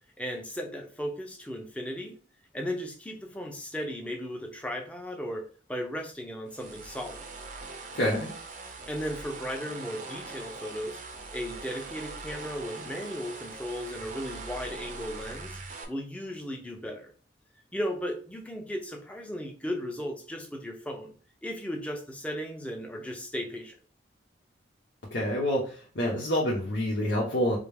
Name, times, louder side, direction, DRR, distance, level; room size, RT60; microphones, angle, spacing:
voice 1, 0.2-2.2 2.5-5.4 5.7-7.2 8.9-11.0 11.3-15.6 15.9-17.1 17.7-21.1 21.4-23.8, equal, 5° left, 2 dB, 0.6 m, -36 dB
sound 1, 6.5-15.8, right 3 dB, 45° right, 0.7 m, -42 dB
voice 2, 7.9-8.3 25.1-27.6, equal, 80° left, -5 dB, 1.0 m, -27 dB
4.9 x 2.0 x 3.5 m, 0.40 s
head